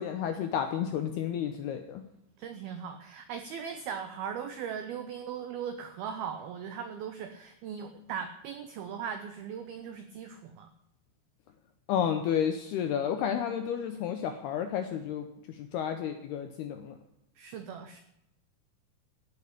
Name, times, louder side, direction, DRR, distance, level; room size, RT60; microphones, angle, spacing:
voice 1, 0.0-2.0 11.9-17.0, left 8 dB, 80° left, 7 dB, 2.3 m, -31 dB
voice 2, 2.4-10.7 17.4-18.0, right 7 dB, 85° right, 8 dB, 2.1 m, -39 dB
16.5 x 7.2 x 8.4 m, 0.84 s
omnidirectional pair, 5.6 m